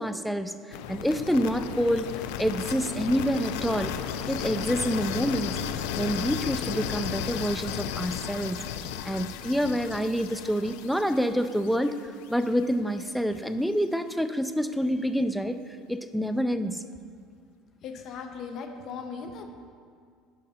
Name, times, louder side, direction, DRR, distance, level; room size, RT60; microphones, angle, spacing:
voice 1, 0.0-4.0 4.3-5.6 5.9-8.6 9.0-15.6 15.9-16.8, equal, ahead, 9 dB, 0.3 m, -27 dB
sound 1, 0.7-12.6, left 9 dB, 85° left, 0.4 m, -34 dB
voice 2, 17.8-19.4, left 5 dB, 45° left, 5 dB, 0.8 m, -38 dB
9.0 x 5.3 x 4.3 m, 2.1 s
cardioid pair, 140°, 0 cm